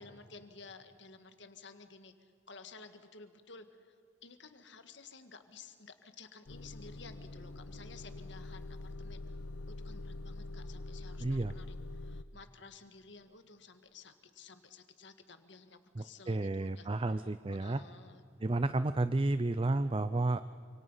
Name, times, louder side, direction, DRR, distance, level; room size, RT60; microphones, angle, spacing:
voice 1, 0.0-9.4 9.7-11.7 11.9-18.2, left 4 dB, 65° left, 8 dB, 1.8 m, -54 dB
Motor vehicle (road) / Engine starting / Idling, 6.5-12.2, left 2 dB, 90° left, 0.7 m, -44 dB
voice 2, 11.2-11.5 16.0-17.8 18.4-20.4, right 2 dB, 25° right, 13 dB, 0.5 m, -31 dB
28.5 x 26.5 x 5.6 m, 2.4 s
head